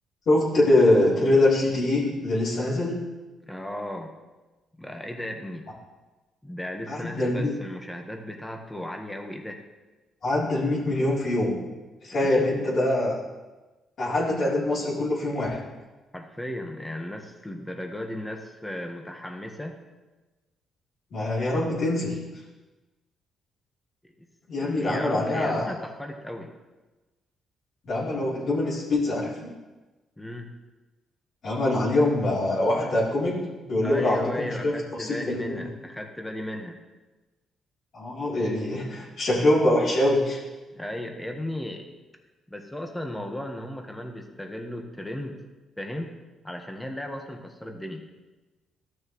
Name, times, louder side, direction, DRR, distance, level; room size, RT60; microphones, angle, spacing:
voice 1, 0.2-3.0 6.9-7.5 10.2-11.6 12.0-13.1 14.0-15.6 21.1-22.2 24.5-25.7 27.9-29.5 31.4-34.7 35.0-35.6 37.9-40.4, left 1 dB, 60° left, -9 dB, 3.4 m, -24 dB
voice 2, 3.5-4.1 4.8-5.7 6.4-9.6 12.1-12.7 16.1-19.8 24.2-24.3 24.6-26.5 30.2-30.5 33.8-36.8 40.7-41.9 42.5-45.4 45.8-46.1 46.4-48.0, left 1 dB, 10° left, 3 dB, 1.3 m, -35 dB
13.5 x 6.4 x 3.1 m, 1.2 s
cardioid pair, 90°, 0 cm